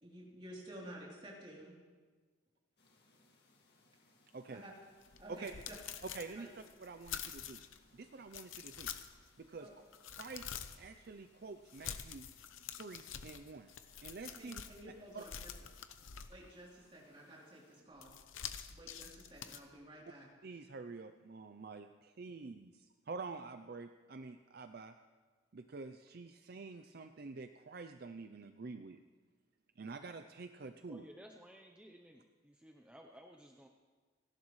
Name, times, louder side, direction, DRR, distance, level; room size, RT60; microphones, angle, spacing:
voice 1, 0.0-1.7 4.5-4.7 5.2-5.5 6.3-6.5 9.6-9.7 14.3-15.5 16.3-18.2 18.7-20.3, right 1 dB, 25° right, -4 dB, 3.3 m, -52 dB
sound 1, 2.8-17.8, left 2 dB, 55° left, 2.1 m, -71 dB
sound 2, 5.0-7.8 8.3-9.3 9.7-10.9 11.7-14.8 15.2-16.6 18.0-19.6, left 8 dB, 85° left, 0.8 m, -47 dB
voice 2, 6.0-6.5 6.8-7.6 7.9-8.9 9.4-9.7 10.2-10.5 10.8-12.3 12.8-13.7 14.0-14.6 15.1-15.3 20.4-24.9 25.5-29.0 29.8-31.0, right 4 dB, 50° right, 8 dB, 0.5 m, -47 dB
voice 3, 30.9-33.7, equal, 5° right, 1 dB, 0.7 m, -56 dB
30.0 x 11.5 x 3.2 m, 1.4 s
head